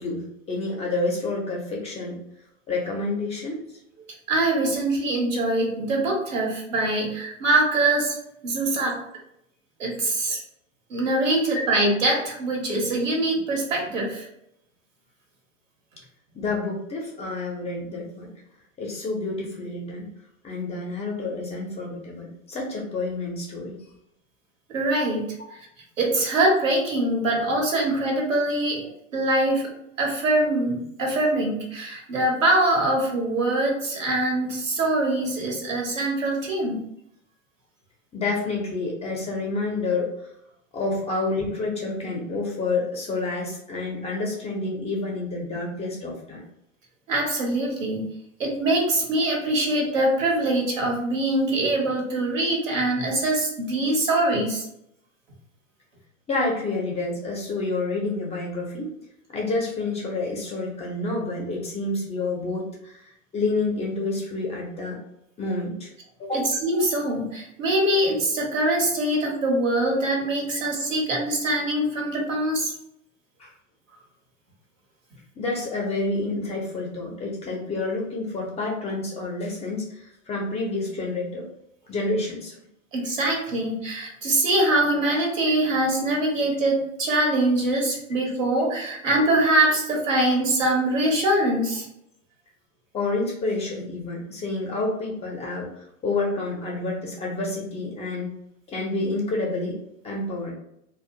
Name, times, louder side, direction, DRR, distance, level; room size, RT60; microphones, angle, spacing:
voice 1, 0.0-2.2 2.7-3.6 11.5-11.6 16.3-18.3 18.8-20.1 20.4-23.8 38.1-40.1 40.7-46.4 56.3-58.9 59.3-65.0 65.4-65.9 66.2-66.5 73.4-73.5 75.4-81.5 81.9-82.6 92.9-95.7 96.0-98.4 98.7-99.8 100.0-100.5, left 3 dB, 15° left, -2 dB, 0.4 m, -29 dB
voice 2, 4.3-8.2 8.4-9.0 9.8-10.4 10.9-14.3 24.7-25.3 26.0-29.7 30.0-36.8 47.1-48.1 48.4-54.6 66.3-72.7 82.9-91.9, right 1 dB, 80° right, 0 dB, 0.9 m, -23 dB
2.3 x 2.1 x 2.6 m, 0.77 s
figure-of-eight pair, 90°, 39 cm